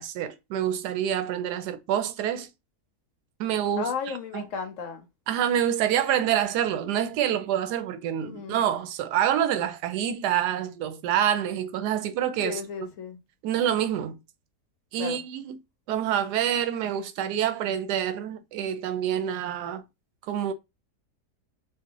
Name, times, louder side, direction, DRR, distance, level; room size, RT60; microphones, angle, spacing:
voice 1, 0.0-2.5 3.4-4.5 5.3-12.6 13.4-14.2 14.9-15.5 15.9-19.8 20.3-20.5, right 10 dB, 85° right, 1.2 m, -27 dB
voice 2, 3.8-5.0 8.2-8.6 12.4-13.2 15.0-15.2, left 6 dB, 65° left, 0.8 m, -34 dB
3.1 x 2.4 x 3.7 m
omnidirectional pair, 1.7 m